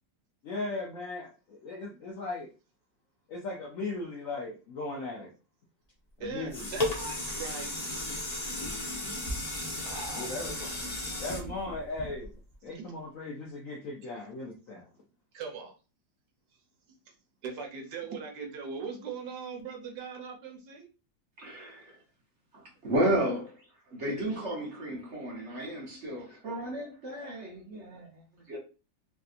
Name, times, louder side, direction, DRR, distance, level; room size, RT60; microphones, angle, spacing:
voice 1, 0.4-2.5 3.3-5.3 6.2-6.7 10.2-10.7 11.2-12.3 12.6-14.9, left 3 dB, 70° left, 0.8 m, -37 dB
sound 1, 6.2-12.5 13.0-13.1, left 1 dB, 40° left, 0.5 m, -35 dB
voice 2, 6.2-8.1 9.0-9.3 9.8-10.3 12.7-12.8 15.3-15.7 17.4-20.9, right 5 dB, 70° right, 1.3 m, -40 dB
voice 3, 21.4-22.0 22.5-28.6, right 1 dB, 50° right, 0.9 m, -33 dB
3.4 x 2.7 x 2.4 m
omnidirectional pair, 2.0 m